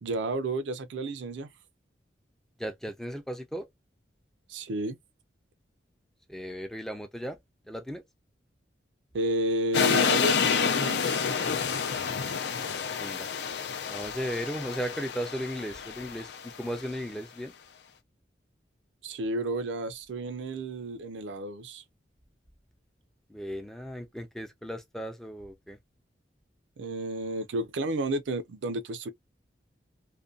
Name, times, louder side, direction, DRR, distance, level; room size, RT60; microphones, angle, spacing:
voice 1, 0.0-1.5 4.5-5.0 9.1-11.2 19.0-21.8 26.8-29.1, right 1 dB, 85° right, 0.4 m, -31 dB
voice 2, 2.6-3.7 6.3-7.4 7.7-8.0 13.0-13.3 13.9-17.5 23.3-25.8, equal, ahead, 0.4 m, -36 dB
sound 1, 9.7-16.8, left 6 dB, 65° left, 0.4 m, -29 dB
sound 2, 9.9-14.0, right 3 dB, 30° left, 0.8 m, -46 dB
2.5 x 2.2 x 2.4 m
head